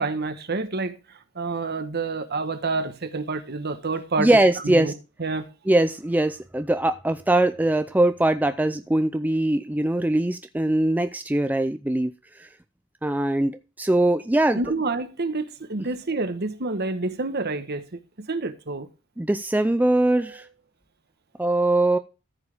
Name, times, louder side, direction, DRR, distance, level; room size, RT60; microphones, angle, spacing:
voice 1, 0.0-4.3 4.6-4.9 5.2-5.5 14.5-18.9 20.2-20.4, right 3 dB, 55° right, 1.2 m, -28 dB
voice 2, 4.2-4.9 5.7-12.1 12.4-12.5 13.0-14.6 19.2-20.4 21.4-22.0, right 1 dB, 10° right, 0.4 m, -21 dB
13.5 x 7.2 x 3.4 m
head